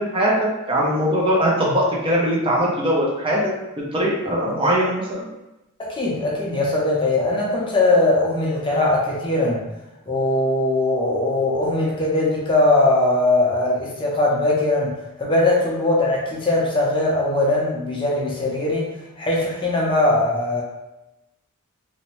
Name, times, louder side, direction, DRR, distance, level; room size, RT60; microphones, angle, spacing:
voice 1, 0.0-3.4 3.9-5.3, equal, 25° right, -4 dB, 0.5 m, -21 dB
voice 2, 5.8-9.6 10.1-18.9 19.2-20.6, left 2 dB, 25° left, -4 dB, 0.5 m, -20 dB
2.6 x 2.1 x 3.0 m, 0.97 s
head